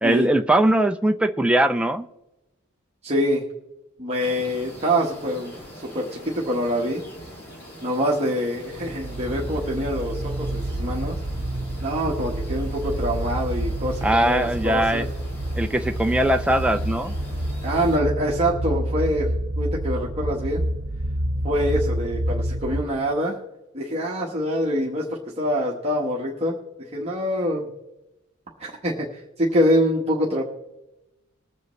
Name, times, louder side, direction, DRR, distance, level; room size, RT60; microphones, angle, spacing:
voice 1, 0.0-2.1 14.0-15.1 15.6-17.1, right 1 dB, 5° right, 6 dB, 0.4 m, -20 dB
voice 2, 3.0-3.4 4.0-7.0 7.8-11.2 11.8-15.0 17.6-20.6 21.4-23.4 23.7-27.7 28.6-30.4, equal, 30° right, -3 dB, 1.2 m, -25 dB
sound 1, 4.2-18.0, equal, 45° left, 3.0 m, -43 dB
sound 2, 8.7-22.8, right 1 dB, 70° right, 0.9 m, -28 dB
21.0 x 7.8 x 3.1 m, 0.95 s
head